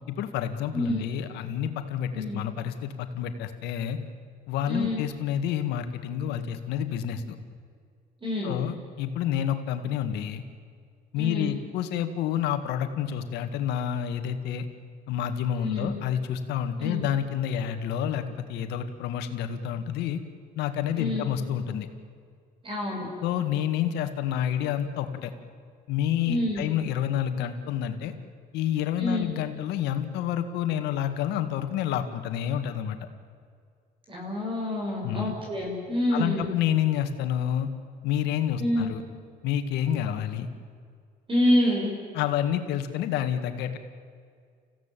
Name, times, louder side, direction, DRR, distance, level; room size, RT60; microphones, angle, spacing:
voice 1, 0.1-4.0 4.5-7.4 8.4-10.4 11.1-14.7 15.1-20.2 20.6-21.9 23.2-25.3 25.9-28.1 28.5-33.0 35.0-35.3 36.1-37.7 38.0-39.0 39.4-40.5 42.1-43.8, left 10 dB, 90° left, 8 dB, 2.0 m, -29 dB
voice 2, 0.7-1.0 2.1-2.4 4.7-5.0 8.2-8.6 11.2-11.5 15.6-15.9 16.8-17.1 21.0-21.3 22.6-23.1 26.3-26.6 29.0-29.3 34.1-36.5 38.6-38.9 41.3-41.9, left 1 dB, 30° right, -1 dB, 6.8 m, -27 dB
28.0 x 16.0 x 9.2 m, 2.1 s
cardioid pair, 110°, 17 cm